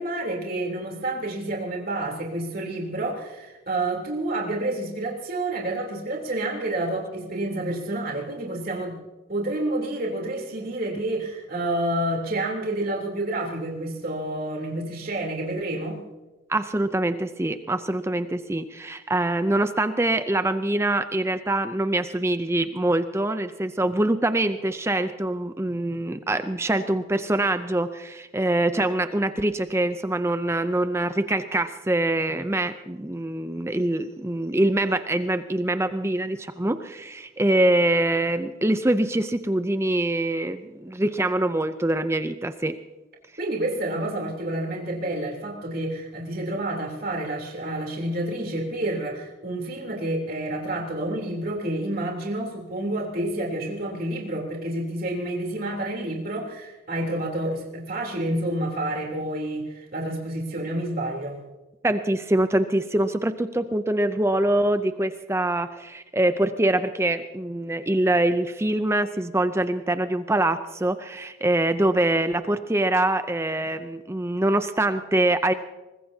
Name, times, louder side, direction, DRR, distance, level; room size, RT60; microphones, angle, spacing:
voice 1, 0.0-9.0 9.3-16.0 43.4-61.4, right 1 dB, 45° right, -1 dB, 3.3 m, -29 dB
voice 2, 16.5-42.8 61.8-75.5, right 1 dB, 15° right, 10 dB, 0.5 m, -24 dB
23.5 x 20.5 x 2.8 m, 1.1 s
head